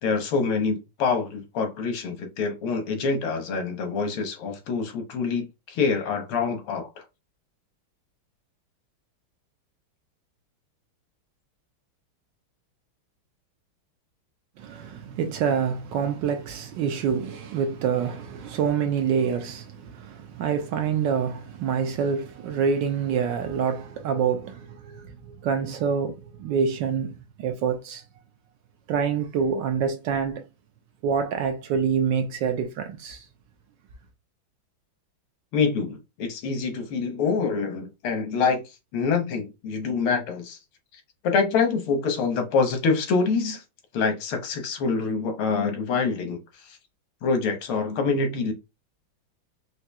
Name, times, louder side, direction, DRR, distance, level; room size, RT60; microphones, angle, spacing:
voice 1, 0.0-6.9 35.5-38.6 38.9-40.6 41.2-43.6 43.9-46.4 46.7-46.8 47.2-48.5, left 5 dB, 90° left, 1.8 m, -25 dB
voice 2, 14.6-28.0 28.9-30.4 31.0-33.2, right 6 dB, 75° right, 1.1 m, -26 dB
4.8 x 2.7 x 2.2 m
omnidirectional pair, 2.3 m